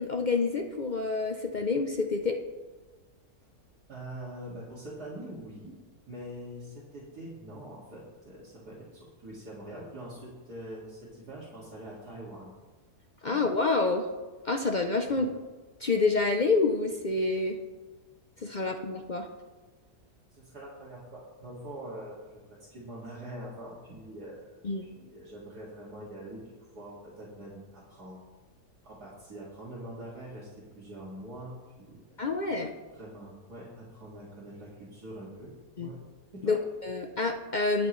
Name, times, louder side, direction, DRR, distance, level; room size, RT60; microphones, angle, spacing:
voice 1, 0.0-2.4 13.2-14.1 14.4-15.3 15.8-17.6 18.4-19.3 24.6-24.9 32.2-32.7 35.8-35.9 36.4-37.9, left 3 dB, 50° left, 4 dB, 0.6 m, -28 dB
voice 2, 3.9-5.8 6.1-12.6 13.2-13.4 15.0-15.2 20.3-28.2 28.8-32.0 32.5-36.0 36.3-36.6, right 1 dB, 85° right, -8 dB, 2.9 m, -44 dB
20.0 x 7.3 x 3.2 m, 1.4 s
omnidirectional pair, 1.6 m